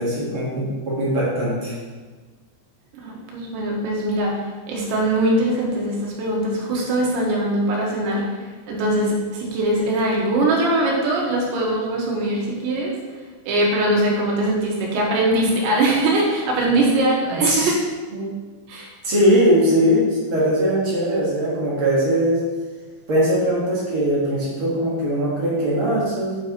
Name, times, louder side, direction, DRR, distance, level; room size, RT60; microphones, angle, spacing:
voice 1, 0.0-1.8 17.3-17.7 18.1-18.3 19.0-22.4 23.1-26.4, equal, 55° right, -7 dB, 1.5 m, -20 dB
voice 2, 2.9-12.9 13.5-17.8 18.7-18.9, right 1 dB, 80° right, -2 dB, 3.7 m, -21 dB
8.7 x 7.4 x 3.1 m, 1.4 s
omnidirectional pair, 5.2 m